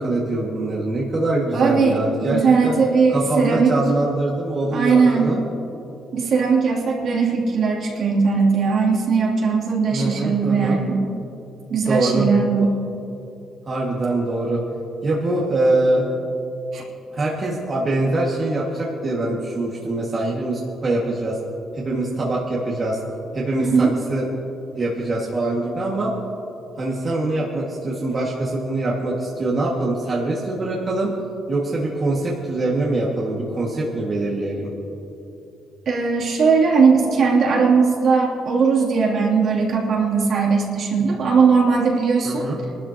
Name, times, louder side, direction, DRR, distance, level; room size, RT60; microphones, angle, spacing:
voice 1, 0.0-2.7 3.1-5.4 9.9-10.8 11.7-12.3 13.7-14.6 15.0-16.1 17.1-21.4 21.7-23.0 23.3-24.3 24.8-26.1 26.8-31.1 31.5-34.7 42.2-42.6, right 2 dB, 40° right, -4 dB, 2.0 m, -23 dB
voice 2, 1.5-3.7 4.7-5.4 6.1-11.0 11.7-12.7 16.7-16.8 23.6-23.9 35.9-42.5, right 5 dB, 65° right, -3 dB, 3.0 m, -19 dB
22.0 x 12.5 x 3.0 m, 2.8 s
cardioid pair, 90°, 0 cm